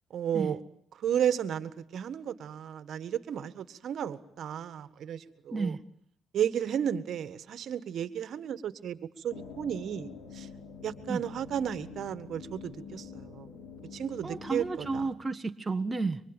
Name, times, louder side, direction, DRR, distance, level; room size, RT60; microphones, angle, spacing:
voice 1, 0.1-0.6 0.9-5.7 6.3-10.5 10.8-13.5 13.9-15.1, right 9 dB, 65° right, 1.6 m, -33 dB
sound 1, 9.3-15.1, left 6 dB, 75° left, 6.6 m, -46 dB
voice 2, 14.2-16.2, right 3 dB, 20° right, 1.3 m, -32 dB
26.5 x 24.5 x 9.0 m
cardioid pair, 90°, 0 cm